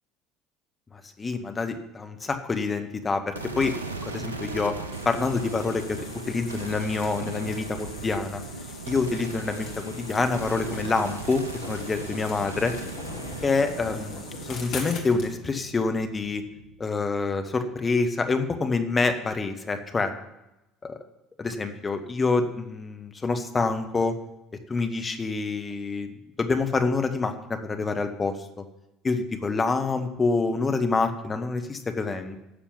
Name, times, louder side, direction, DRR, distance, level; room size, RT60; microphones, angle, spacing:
voice 1, 0.9-3.7 4.0-4.7 5.0-8.4 8.9-12.7 13.4-16.4 16.8-20.1 20.8-20.9 21.4-24.1 24.7-28.3 29.0-32.4, left 4 dB, 25° left, 7 dB, 1.5 m, -27 dB
sound 1, 3.3-17.6, right 3 dB, 85° right, 0.7 m, -38 dB
sound 2, 4.9-15.3, left 4 dB, 50° left, 2.0 m, -42 dB
11.5 x 6.8 x 9.2 m, 0.92 s
figure-of-eight pair, 60°, 0 cm